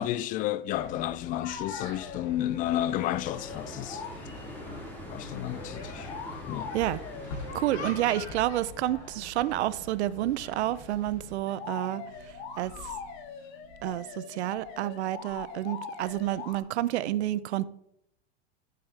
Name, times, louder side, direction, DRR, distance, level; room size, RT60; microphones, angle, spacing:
voice 1, 0.0-4.0 5.1-6.1 6.4-6.7, left 13 dB, 25° left, 0.3 m, -31 dB
sound 1, 0.7-11.3, left 3 dB, 75° left, 3.0 m, -44 dB
sound 2, 0.8-0.9 1.2-2.5 3.1-4.2 5.4-7.6 11.5-16.6, left 6 dB, 55° left, 2.0 m, -42 dB
sound 3, 2.5-8.2, equal, 5° left, 2.9 m, -44 dB
voice 2, 7.5-13.0 13.8-17.7, right 14 dB, 75° right, 0.7 m, -30 dB
15.5 x 7.7 x 3.4 m
supercardioid pair, 125°, 34 cm